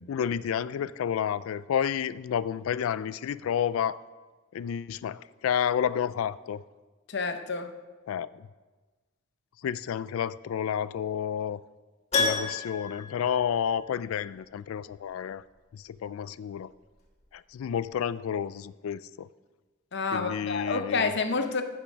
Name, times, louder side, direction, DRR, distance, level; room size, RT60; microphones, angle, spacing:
voice 1, 0.1-4.0 4.5-6.6 8.1-8.5 9.6-11.6 12.2-15.4 15.7-16.7 17.3-19.3 20.1-21.1, left 8 dB, 75° left, 17 dB, 0.3 m, -30 dB
voice 2, 7.1-7.7 19.9-21.6, left 4 dB, 55° left, 7 dB, 0.8 m, -29 dB
Keyboard (musical), 12.1-14.2 14.4-14.5 17.2-17.3 17.6-17.7, left 3 dB, 30° left, 1.7 m, -31 dB
14.5 x 5.8 x 5.2 m, 1.3 s
head